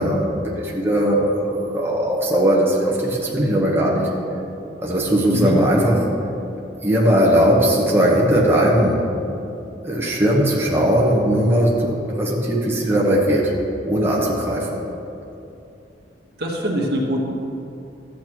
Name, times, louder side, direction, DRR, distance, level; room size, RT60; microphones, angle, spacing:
voice 1, 0.0-4.1 4.8-6.1 6.8-9.0 9.8-13.5 13.8-14.8, equal, 15° right, -4 dB, 1.1 m, -19 dB
voice 2, 16.4-17.2, equal, 60° right, -2 dB, 1.4 m, -22 dB
13.5 x 8.5 x 3.0 m, 2.7 s
head